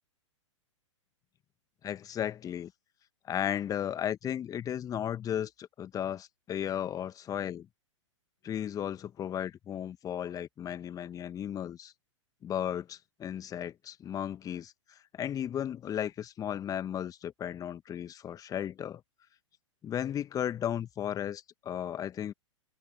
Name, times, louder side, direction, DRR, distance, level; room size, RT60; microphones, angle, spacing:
voice 1, 1.8-2.7 3.3-7.7 8.4-11.9 12.4-14.7 15.1-19.0 19.8-22.3, left 10 dB, 20° left, 1.8 m, -35 dB
open air
figure-of-eight pair, 105°, 16 cm